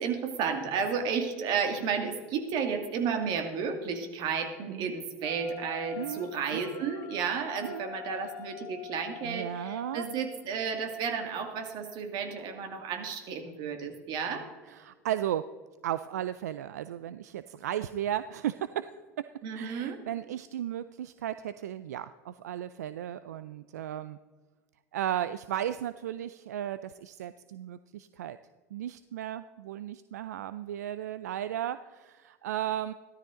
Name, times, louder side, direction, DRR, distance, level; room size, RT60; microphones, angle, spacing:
voice 1, 0.0-14.5 19.4-20.0, right 6 dB, 55° right, 6 dB, 2.2 m, -32 dB
Wind instrument woodwind instrument, 5.2-10.5, left 11 dB, 45° left, 2.0 m, -45 dB
voice 2, 6.0-6.8 7.6-7.9 9.2-10.1 14.7-15.4 15.8-18.9 19.2-19.3 19.5-24.2 24.9-28.4 28.7-32.9, right 11 dB, 85° right, 14 dB, 0.4 m, -35 dB
14.5 x 13.0 x 3.8 m, 1.4 s
hypercardioid pair, 85°, 9 cm